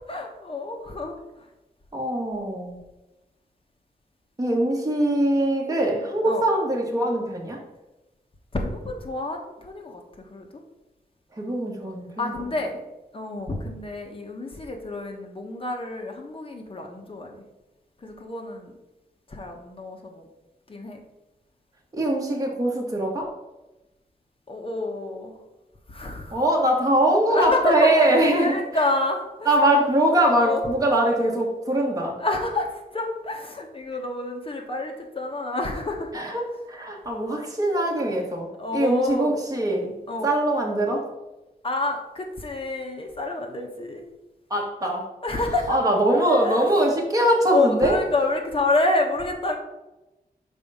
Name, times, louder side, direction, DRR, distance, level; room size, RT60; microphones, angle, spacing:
voice 1, 0.1-1.2 6.3-6.4 8.5-10.6 12.2-12.8 13.1-17.5 18.0-18.7 19.3-20.3 20.7-21.0 24.5-25.4 25.9-26.4 27.3-29.5 30.4-30.6 32.2-36.1 37.7-37.9 38.6-39.4 40.1-40.3 41.6-44.1 45.2-45.8 46.1-46.6 47.5-49.6, left 2 dB, 35° left, 2 dB, 1.1 m, -28 dB
voice 2, 1.9-2.8 4.4-7.6 11.3-12.3 21.9-23.3 26.3-28.6 29.4-32.2 36.1-36.4 36.7-39.9 40.2-41.0 44.5-45.1 45.7-48.0, right 1 dB, 25° right, -2 dB, 1.5 m, -22 dB
5.5 x 4.2 x 5.4 m, 1.0 s
wide cardioid pair, 145°, 15 cm